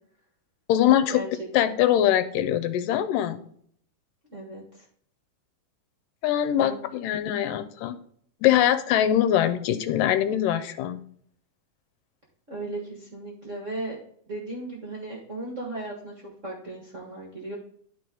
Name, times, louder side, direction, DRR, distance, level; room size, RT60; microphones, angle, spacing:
voice 1, 0.7-1.2 1.5-3.4 6.2-8.0 8.4-11.0, left 11 dB, 85° left, 10 dB, 2.3 m, -22 dB
voice 2, 4.3-4.8 6.6-6.8 12.5-14.0 14.3-17.5, right 2 dB, 40° right, -2 dB, 1.0 m, -36 dB
11.5 x 4.5 x 3.8 m, 0.62 s
omnidirectional pair, 3.8 m